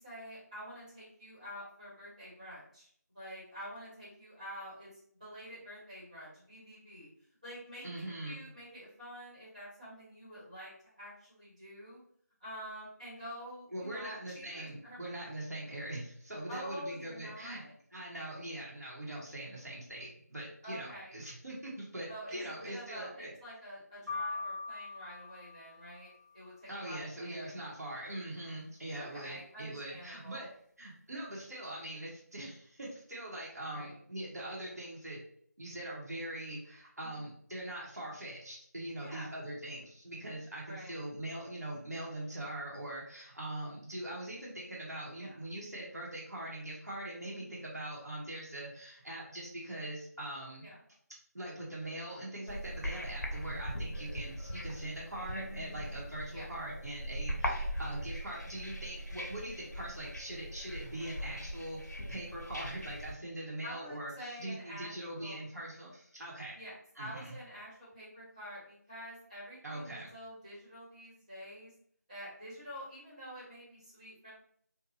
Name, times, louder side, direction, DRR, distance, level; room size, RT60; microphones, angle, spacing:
voice 1, 0.0-7.1 7.4-12.0 12.4-15.3 16.5-17.7 20.6-21.2 22.1-27.5 28.9-30.4 33.7-34.0 37.0-37.2 39.0-39.3 40.7-41.0 45.2-45.4 47.4-47.6 50.6-50.8 56.3-56.5 63.6-65.4 66.5-71.7 72.1-74.3, equal, 25° right, -10 dB, 1.2 m, -48 dB
voice 2, 7.8-8.4 13.7-17.6 17.9-23.3 26.7-30.5 30.8-35.2 35.6-50.7 51.3-64.1 64.4-66.6 67.0-67.4 69.6-70.1, right 1 dB, 65° right, -5 dB, 1.0 m, -42 dB
sound 1, 24.1-26.2, left 3 dB, 90° right, 1.3 m, -41 dB
sound 2, 52.5-63.1, equal, 75° left, 0.7 m, -40 dB
2.7 x 2.2 x 2.7 m, 0.63 s
figure-of-eight pair, 180°, 9 cm